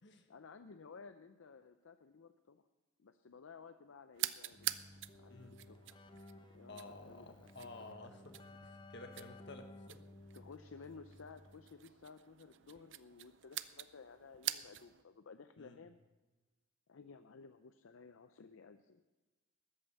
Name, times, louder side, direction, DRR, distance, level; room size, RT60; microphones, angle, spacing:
voice 1, 0.3-2.6 3.0-4.8 5.2-5.4 5.7-5.8 6.5-7.5 10.3-16.0 16.9-19.0, left 5 dB, 75° left, 9 dB, 0.5 m, -55 dB
sound 1, 4.1-15.0, right 14 dB, 60° right, 0.5 m, -46 dB
Keyboard (musical), 4.6-11.9, left 2 dB, 25° left, 0.6 m, -57 dB
voice 2, 6.7-10.0 15.6-15.8, left 2 dB, 60° left, 6 dB, 1.5 m, -53 dB
13.5 x 8.9 x 6.9 m, 1.2 s
head